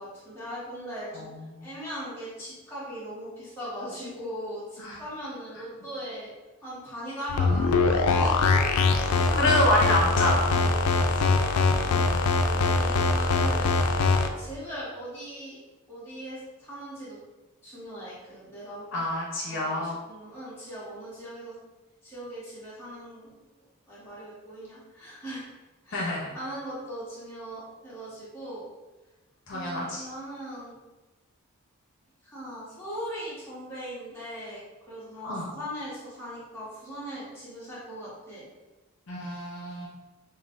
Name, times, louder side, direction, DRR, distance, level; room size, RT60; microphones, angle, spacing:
voice 1, 0.0-1.3 1.6-6.3 6.6-8.7 9.0-9.6 10.9-11.5 12.4-13.8 14.4-15.6 15.9-17.2 17.6-18.9 19.5-21.6 22.0-23.4 23.9-25.5 25.8-28.7 29.5-30.8 32.2-38.5, equal, 10° left, -10 dB, 1.3 m, -39 dB
voice 2, 1.1-1.7 4.8-5.0 9.3-10.6 12.1-12.3 18.9-19.9 25.9-26.3 29.5-30.1 35.2-35.5 39.1-39.9, left 1 dB, 60° left, -4 dB, 0.7 m, -27 dB
sound 1, 7.3-14.3, left 3 dB, 85° left, 0.4 m, -23 dB
5.5 x 2.2 x 2.5 m, 1.1 s
head